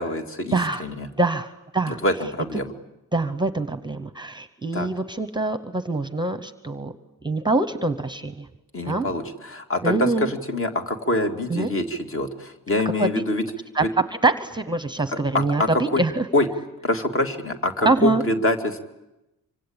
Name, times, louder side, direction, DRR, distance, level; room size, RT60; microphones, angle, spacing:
voice 1, 0.0-1.1 1.9-2.7 4.7-4.9 8.7-13.4 13.8-13.9 15.6-16.0 16.3-16.5 16.8-18.8, left 1 dB, 40° left, 5 dB, 2.4 m, -25 dB
voice 2, 0.5-0.8 1.2-2.0 3.1-6.9 7.2-8.5 8.8-9.1 9.8-10.3 11.5-11.7 13.0-13.1 13.7-13.8 14.2-16.3 17.8-18.2, right 3 dB, 15° right, 11 dB, 0.9 m, -24 dB
26.0 x 25.5 x 8.8 m, 0.93 s
wide cardioid pair, 175°, 32 cm